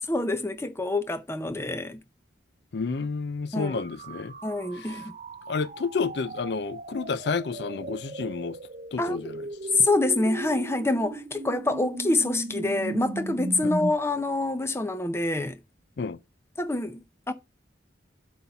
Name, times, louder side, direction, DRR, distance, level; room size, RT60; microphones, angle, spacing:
voice 1, 0.1-2.0 3.5-3.8 4.4-5.1 9.0-9.2 9.7-15.6 16.6-17.3, left 2 dB, 15° left, 0.6 m, -26 dB
voice 2, 2.7-4.3 4.8-5.0 5.5-8.6 8.9-9.4 13.6-13.7 16.0-16.2, left 4 dB, 60° left, 0.4 m, -30 dB
sound 1, 3.6-13.9, right 2 dB, 35° right, 0.5 m, -37 dB
8.0 x 4.3 x 5.5 m
head